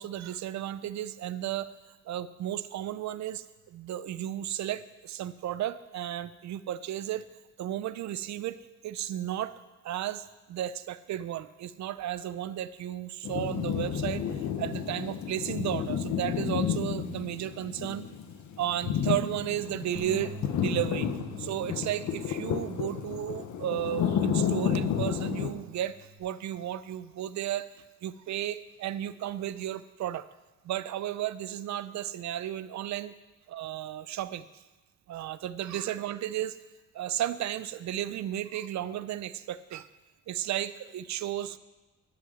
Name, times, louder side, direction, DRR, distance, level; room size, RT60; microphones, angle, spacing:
voice 1, 0.0-1.7 2.1-7.2 7.6-9.5 9.8-18.0 18.6-21.1 21.4-27.7 28.0-30.3 30.6-33.1 33.5-34.4 35.1-36.6 36.9-39.9 40.3-41.6, right 12 dB, 65° right, 15 dB, 0.6 m, -34 dB
sound 1, 13.2-25.5, left 8 dB, 75° left, 1.1 m, -31 dB
Bass guitar, 19.9-26.2, right 1 dB, 20° right, 2.4 m, -47 dB
11.0 x 6.1 x 7.6 m, 1.1 s
cardioid pair, 90°, 30 cm